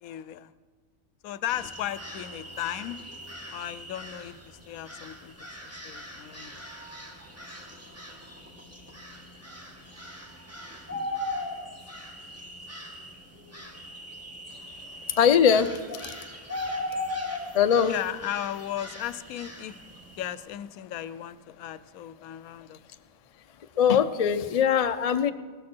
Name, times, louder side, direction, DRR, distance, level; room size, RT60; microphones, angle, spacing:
voice 1, 0.0-0.5 1.2-3.0 3.5-5.3 5.6-6.6 11.8-11.9 16.6-16.7 17.9-19.8 20.2-22.8, left 12 dB, 85° left, 16 dB, 1.0 m, -36 dB
sound 1, 1.5-20.3, left 1 dB, 10° right, 1.7 m, -39 dB
voice 2, 15.1-16.1 17.5-17.9 23.8-25.3, left 8 dB, 55° left, 9 dB, 0.4 m, -22 dB
18.5 x 13.5 x 4.4 m, 1.5 s
omnidirectional pair, 1.5 m